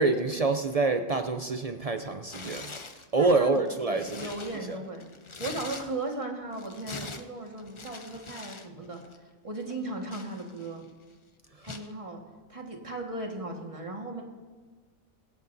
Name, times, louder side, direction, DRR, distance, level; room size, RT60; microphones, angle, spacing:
voice 1, 0.0-2.8 3.1-4.3 4.7-4.8 11.5-11.7, right 3 dB, 50° right, 7 dB, 0.4 m, -27 dB
Tearing, 2.2-3.1 3.6-6.2 6.5-8.7 8.9-9.2 9.7-10.8 11.6-11.9, left 4 dB, 35° left, 0.6 m, -43 dB
voice 2, 3.2-5.0 5.4-9.0 9.4-10.9 11.6-12.2 12.5-14.2, right 2 dB, 25° right, 1 dB, 1.6 m, -36 dB
24.5 x 8.3 x 2.7 m, 1.4 s
omnidirectional pair, 1.3 m